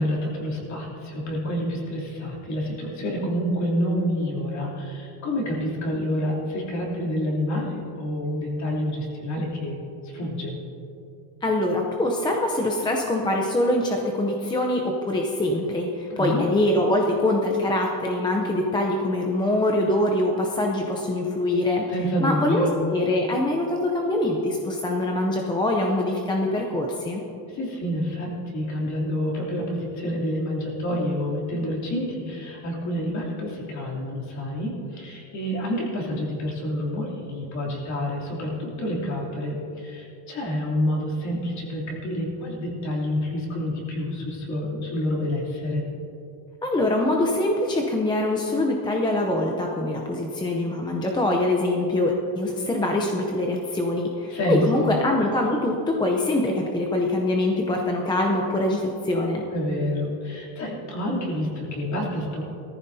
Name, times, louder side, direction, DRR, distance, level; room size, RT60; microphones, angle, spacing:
voice 1, 0.0-9.8 10.0-10.5 16.1-16.5 21.9-22.8 27.5-45.9 54.3-54.9 59.5-62.4, equal, 40° left, -3 dB, 3.0 m, -28 dB
voice 2, 11.4-21.9 22.2-27.2 46.6-59.5, left 1 dB, 10° left, 0 dB, 0.6 m, -24 dB
18.5 x 14.5 x 2.7 m, 2.7 s
cardioid pair, 165°, 45 cm